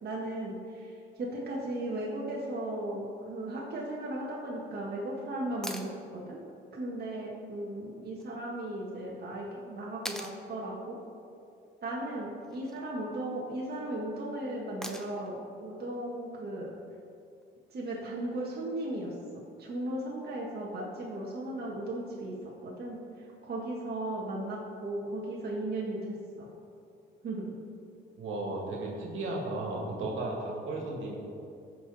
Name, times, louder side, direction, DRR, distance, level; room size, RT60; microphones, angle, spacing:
voice 1, 0.0-6.4 6.7-11.0 11.8-16.8 17.7-23.0 23.4-26.5 27.2-27.5, right 1 dB, 55° right, -4 dB, 1.7 m, -36 dB
sound 1, 5.6-5.9 8.2-8.3 10.1-10.4 12.4-12.8 14.8-15.3 17.4-17.5, equal, 5° left, 0.9 m, -40 dB
voice 2, 28.2-31.2, right 2 dB, 80° right, -2 dB, 2.3 m, -34 dB
14.5 x 5.9 x 4.2 m, 2.5 s
cardioid pair, 90°, 20 cm